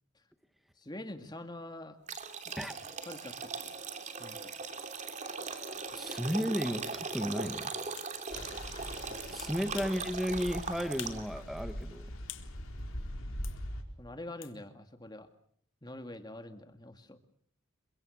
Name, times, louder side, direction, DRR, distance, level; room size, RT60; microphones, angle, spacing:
voice 1, 0.8-2.0 2.5-2.6 3.1-3.8 4.2-4.5 9.0-9.5 14.0-15.3 15.8-17.2, left 1 dB, 20° left, 7 dB, 2.1 m, -45 dB
sound 1, 2.1-11.4, right 4 dB, 35° right, 2.9 m, -40 dB
voice 2, 5.9-7.7 9.3-12.1, equal, ahead, 9 dB, 1.7 m, -34 dB
sound 2, 6.3-6.5 7.1-7.3 8.0-8.1 9.4-10.0 10.4-10.5 11.0-11.3 11.6-12.5 13.4-13.6 14.4-14.6, left 13 dB, 60° left, 2.1 m, -46 dB
sound 3, 8.3-13.8, equal, 75° left, 5.1 m, -42 dB
29.5 x 24.0 x 6.5 m, 0.63 s
head